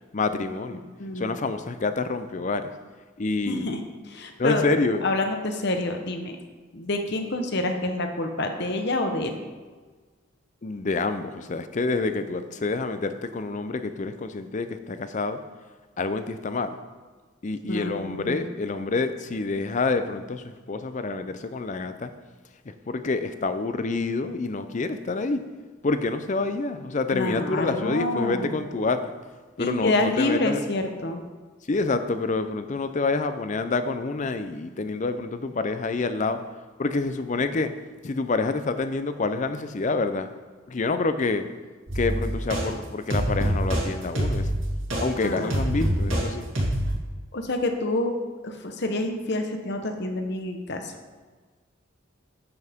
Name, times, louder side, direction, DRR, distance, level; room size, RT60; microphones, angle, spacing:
voice 1, 0.1-0.8 1.2-2.7 3.2-3.7 4.4-5.1 10.6-15.4 16.0-16.8 17.4-22.1 22.7-25.4 25.8-29.1 29.6-30.6 31.7-36.4 36.8-37.8 38.0-40.3 40.7-41.5 41.9-44.5 45.0-46.5, left 3 dB, 35° left, 10 dB, 0.5 m, -27 dB
voice 2, 0.7-1.5 3.5-3.8 4.1-4.7 5.0-6.4 6.7-9.4 17.7-18.4 27.1-28.5 29.6-31.2 45.2-45.5 47.3-48.1 48.4-50.9, left 2 dB, 55° left, 5 dB, 1.0 m, -27 dB
sound 1, 41.9-42.6 43.1-43.8 44.1-46.2 46.5-46.9, equal, 70° right, 2.9 m, -25 dB
9.5 x 8.2 x 3.6 m, 1.4 s
head